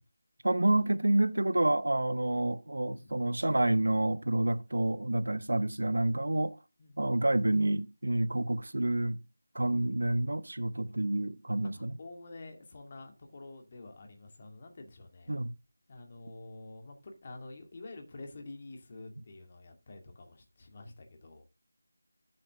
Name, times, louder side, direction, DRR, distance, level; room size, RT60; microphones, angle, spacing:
voice 1, 0.4-6.5 7.0-9.2 9.5-11.9 15.3-15.5, right 1 dB, 70° right, 1.0 m, -28 dB
voice 2, 6.8-7.4 11.6-15.3 15.9-21.4, left 2 dB, 30° left, 2.3 m, -48 dB
12.5 x 7.6 x 3.6 m
figure-of-eight pair, 165°, 0 cm